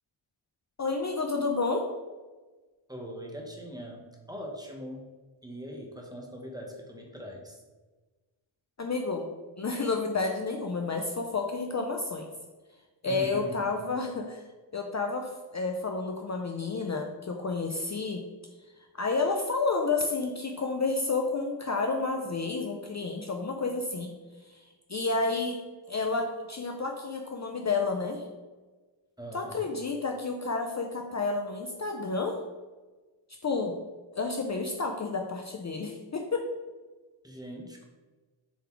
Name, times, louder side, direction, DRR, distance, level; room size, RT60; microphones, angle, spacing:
voice 1, 0.8-1.9 8.8-9.3 9.6-12.3 13.0-14.4 14.7-18.2 19.0-24.1 24.5-24.6 24.9-25.6 25.9-28.3 29.3-32.4 33.4-33.8 34.1-36.4, left 3 dB, 35° left, 3 dB, 0.6 m, -30 dB
voice 2, 2.9-5.1 5.4-7.6 13.1-13.8 29.2-29.7 37.2-37.9, equal, 10° right, 0 dB, 1.0 m, -41 dB
7.0 x 4.1 x 4.5 m, 1.3 s
wide cardioid pair, 145°, 48 cm